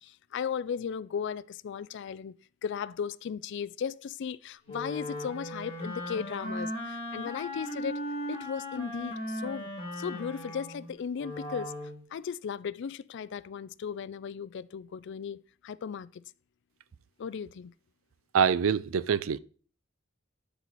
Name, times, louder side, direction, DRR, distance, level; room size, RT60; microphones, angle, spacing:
voice 1, 0.0-2.3 2.6-11.7 12.1-16.2 17.2-17.7, left 7 dB, 60° left, 0.4 m, -36 dB
Wind instrument woodwind instrument, 4.6-12.0, equal, 30° left, 2.5 m, -37 dB
voice 2, 18.3-19.4, right 7 dB, 85° right, 0.4 m, -25 dB
11.5 x 4.6 x 4.1 m
head